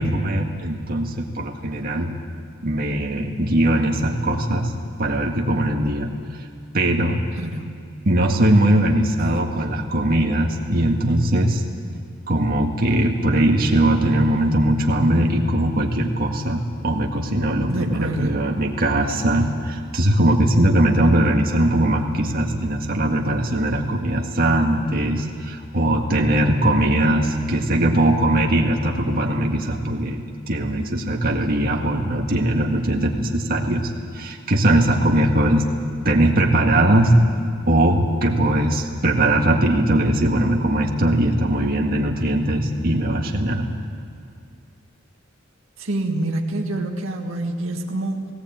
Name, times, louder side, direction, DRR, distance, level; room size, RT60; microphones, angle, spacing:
voice 1, 0.0-2.1 2.6-4.7 5.0-6.5 6.7-7.3 8.1-11.6 12.3-35.7 36.0-37.2 37.7-43.7, right 1 dB, 45° right, 0 dB, 1.9 m, -20 dB
voice 2, 7.4-7.7 9.2-9.4 17.7-18.5 26.9-27.1 45.8-48.3, right 2 dB, 80° right, 2 dB, 1.8 m, -27 dB
18.0 x 18.0 x 8.8 m, 2.4 s
head